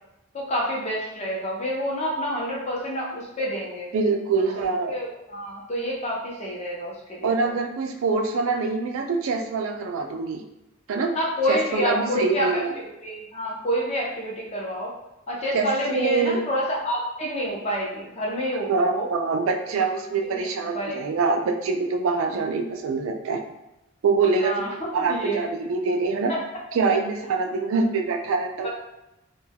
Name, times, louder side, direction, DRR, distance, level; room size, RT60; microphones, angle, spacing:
voice 1, 0.3-3.9 4.6-7.5 11.1-14.9 15.3-19.1 20.2-20.5 20.7-21.0 24.4-25.5 26.3-26.4 28.6-28.7, equal, 30° left, -3 dB, 0.5 m, -28 dB
voice 2, 3.9-4.9 7.2-10.4 10.9-11.1 11.5-12.7 15.5-16.4 18.7-23.4 24.0-26.3 26.7-28.7, right 4 dB, 70° right, 3 dB, 0.3 m, -24 dB
2.2 x 2.2 x 3.3 m, 0.93 s
head